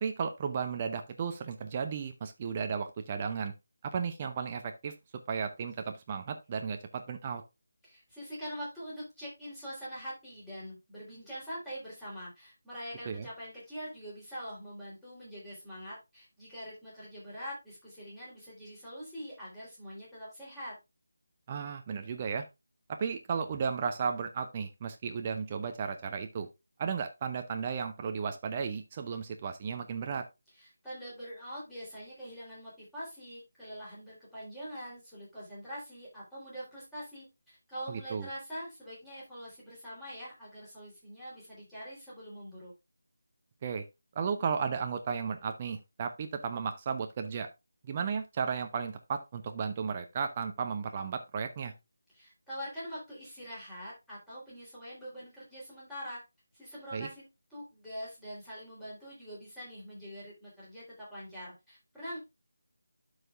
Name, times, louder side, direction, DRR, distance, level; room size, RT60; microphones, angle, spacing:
voice 1, 0.0-3.5 3.8-4.9 5.3-7.4 13.1-13.3 21.5-22.5 22.9-26.5 26.8-30.2 37.9-38.3 43.6-43.8 44.2-47.5 47.8-51.7 56.9-57.1, right 6 dB, 25° right, 6 dB, 0.6 m, -34 dB
voice 2, 7.8-20.7 30.5-42.7 52.1-56.2 56.5-62.2, equal, 5° left, -9 dB, 3.7 m, -44 dB
12.0 x 4.9 x 2.5 m, 0.23 s
figure-of-eight pair, 160°, 0 cm